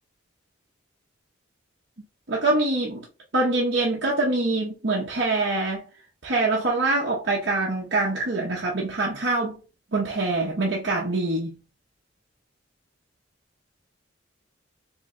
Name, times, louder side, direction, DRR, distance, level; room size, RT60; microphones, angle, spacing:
voice 1, 2.3-3.0 3.3-5.8 6.2-9.6 9.9-11.6, right 2 dB, 60° right, 0.9 m, -24 dB
3.6 x 3.2 x 3.6 m
head